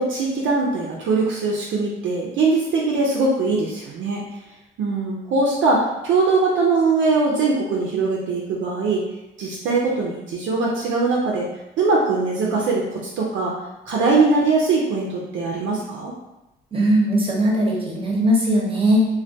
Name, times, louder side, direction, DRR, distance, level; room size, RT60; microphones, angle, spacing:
voice 1, 0.0-4.2 4.8-9.0 9.4-11.5 11.8-13.6 13.9-16.1, right 3 dB, 75° right, -3 dB, 0.5 m, -21 dB
voice 2, 16.7-19.1, equal, 25° right, -3 dB, 0.7 m, -19 dB
2.2 x 2.2 x 2.6 m, 0.95 s
cardioid pair, 90°, 20 cm